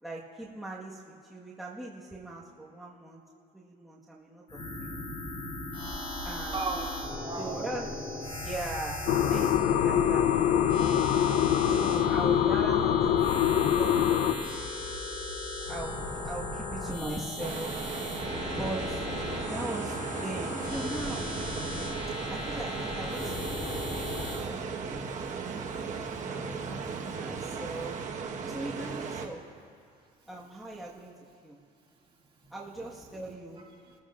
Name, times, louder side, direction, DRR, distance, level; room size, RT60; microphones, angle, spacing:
voice 1, 0.0-3.2 3.5-5.0 6.2-6.7 7.4-7.9 8.4-9.0 9.3-11.1 11.6-13.0 13.4-14.5 15.6-17.7 18.6-19.0 19.5-21.3 22.3-25.0 25.3-25.7 26.3-28.0 28.5-29.4 30.3-31.1 31.4-31.6 32.5-33.6, right 2 dB, ahead, 1.5 m, -40 dB
sound 1, 4.5-24.5, left 2 dB, 35° left, 3.1 m, -37 dB
voice 2, 6.5-7.6 25.8-26.2 26.9-27.2 27.7-27.8 33.8-33.9, right 3 dB, 30° right, 2.4 m, -37 dB
sound 2, 9.1-14.4, left 10 dB, 80° left, 0.6 m, -24 dB
sound 3, 17.4-29.3, right 5 dB, 45° right, 1.3 m, -36 dB
26.5 x 14.5 x 2.5 m
cardioid pair, 110°, 17 cm